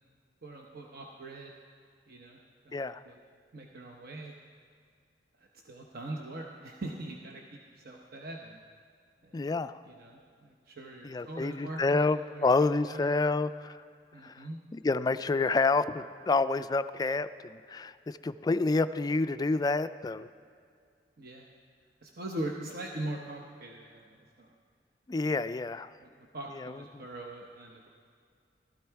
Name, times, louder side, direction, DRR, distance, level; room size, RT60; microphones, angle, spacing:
voice 1, 0.4-1.5 2.1-2.4 2.6-3.2 3.5-4.3 5.4-8.6 9.2-9.6 9.8-13.1 14.1-14.6 21.2-21.5 22.0-24.5 26.0-27.9, right 1 dB, 60° right, 0 dB, 0.9 m, -42 dB
voice 2, 9.3-9.8 11.0-13.7 14.2-14.4 14.7-20.3 25.1-25.9 26.6-26.7, left 3 dB, 20° left, 12 dB, 0.3 m, -28 dB
15.5 x 13.0 x 4.6 m, 2.2 s
head